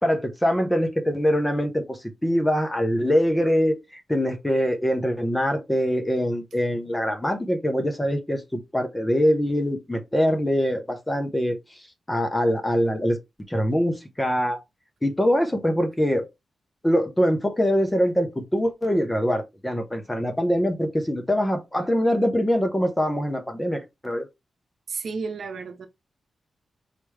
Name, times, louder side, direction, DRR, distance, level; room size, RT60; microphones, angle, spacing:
voice 1, 0.0-11.8 12.1-13.2 13.5-14.6 15.0-16.3 16.8-24.2, equal, 10° left, 0.9 m, -23 dB
voice 2, 24.9-25.9, right 4 dB, 65° right, 0.8 m, -32 dB
4.9 x 3.0 x 3.4 m
wide cardioid pair, 135°, 0 cm